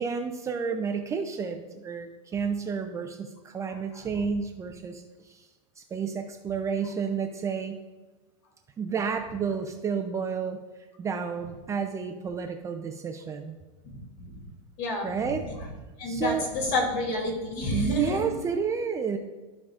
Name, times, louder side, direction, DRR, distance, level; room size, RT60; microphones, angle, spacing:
voice 1, 0.0-5.5 5.8-7.8 8.8-10.6 11.0-13.6 15.0-15.5 16.0-16.5 17.7-19.2, right 6 dB, 20° right, 5 dB, 0.4 m, -31 dB
voice 2, 14.8-15.1 15.4-15.5 16.0-18.3, left 2 dB, 45° left, 0 dB, 2.5 m, -29 dB
13.0 x 4.9 x 2.4 m, 1.2 s
supercardioid pair, 140°, 17 cm